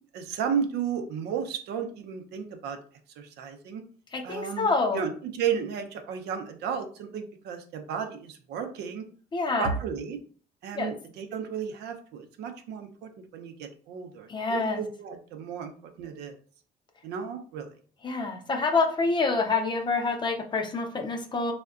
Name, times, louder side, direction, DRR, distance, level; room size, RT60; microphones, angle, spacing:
voice 1, 0.1-2.8 3.2-3.8 4.2-9.1 9.6-10.2 10.6-16.3 17.0-17.7, right 7 dB, 80° right, 6 dB, 0.6 m, -33 dB
voice 2, 4.1-5.0 9.3-9.8 10.7-10.9 14.3-14.8 18.0-21.5, left 3 dB, 25° left, 4 dB, 0.5 m, -27 dB
3.4 x 2.1 x 2.4 m, 0.44 s
cardioid pair, 110°, 17 cm